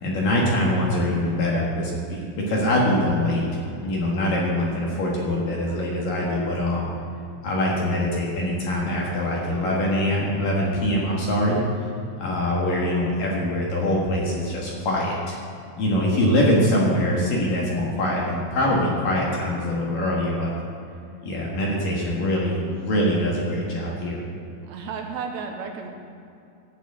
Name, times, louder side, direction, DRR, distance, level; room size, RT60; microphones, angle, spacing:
voice 1, 0.0-3.4 3.8-6.9 7.4-11.6 12.2-15.4 15.8-20.5 21.2-24.2, left 1 dB, 60° left, -4 dB, 2.7 m, -23 dB
voice 2, 24.6-25.9, right 5 dB, 80° right, 3 dB, 2.9 m, -33 dB
14.0 x 6.1 x 8.1 m, 2.6 s
omnidirectional pair, 5.4 m